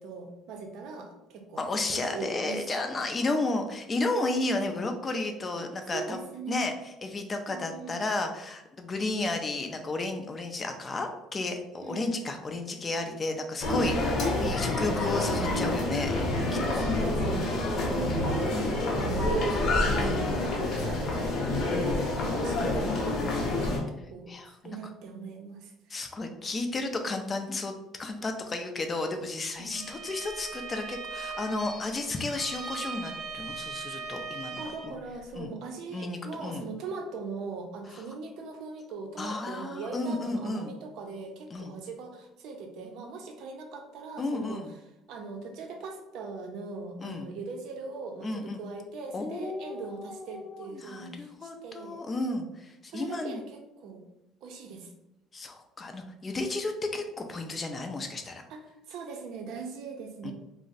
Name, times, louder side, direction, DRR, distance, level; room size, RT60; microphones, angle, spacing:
voice 1, 0.0-2.6 5.6-6.7 7.5-8.0 11.8-12.3 16.5-26.0 29.6-29.9 34.6-44.6 45.1-52.0 52.9-54.1 54.4-54.9 58.5-60.3, right 4 dB, 65° right, 4 dB, 0.5 m, -40 dB
voice 2, 1.6-6.2 6.5-6.7 7.0-16.1 16.7-16.8 17.8-18.2 18.5-18.8 20.0-20.2 24.3-24.5 25.9-27.7 28.0-34.6 34.8-34.9 35.3-35.5 35.9-36.6 37.9-38.0 39.2-40.7 41.5-41.7 44.2-44.7 47.0-47.3 48.2-48.6 49.1-53.4 55.3-58.4 60.2-60.3, left 2 dB, 25° left, 5 dB, 0.4 m, -33 dB
sound 1, 13.6-23.8, left 2 dB, 50° left, 0.8 m, -28 dB
Bowed string instrument, 29.7-35.0, right 4 dB, 25° right, 0.7 m, -39 dB
2.5 x 2.0 x 3.9 m, 0.92 s
cardioid pair, 145°, 0 cm